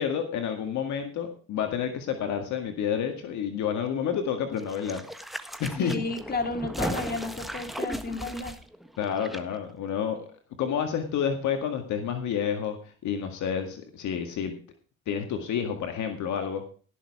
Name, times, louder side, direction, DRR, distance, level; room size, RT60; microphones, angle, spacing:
voice 1, 0.0-5.0 5.6-5.9 9.0-10.3 10.6-14.5 15.1-16.6, left 8 dB, 65° left, 5 dB, 1.9 m, -29 dB
sound 1, 4.6-9.4 9.7-9.8, equal, ahead, 1.4 m, -36 dB
voice 2, 5.8-8.5, left 3 dB, 30° left, 5 dB, 2.8 m, -32 dB
16.5 x 6.8 x 4.9 m, 0.40 s
supercardioid pair, 70°, 31 cm